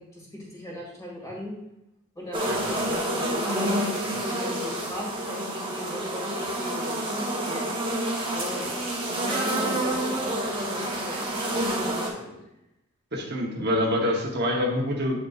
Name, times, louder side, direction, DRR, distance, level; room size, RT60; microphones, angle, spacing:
voice 1, 0.0-1.5 2.2-7.7 8.3-8.7 9.1-10.4 10.7-12.4, equal, 15° left, -4 dB, 2.1 m, -38 dB
sound 1, 2.3-12.1, right 1 dB, 25° right, 1.0 m, -28 dB
voice 2, 13.1-15.2, left 1 dB, 50° right, -1 dB, 0.9 m, -26 dB
8.2 x 5.1 x 2.4 m, 0.89 s
head